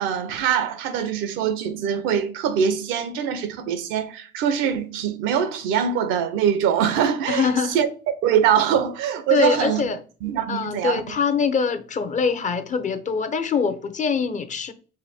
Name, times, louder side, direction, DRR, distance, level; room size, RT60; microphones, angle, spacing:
voice 1, 0.0-7.9 8.2-9.8 10.2-11.2, right 8 dB, 85° right, 0.7 m, -23 dB
voice 2, 7.3-7.8 9.3-10.0 10.5-14.7, left 5 dB, 40° left, 0.7 m, -23 dB
5.0 x 2.3 x 4.2 m
supercardioid pair, 80°, 20 cm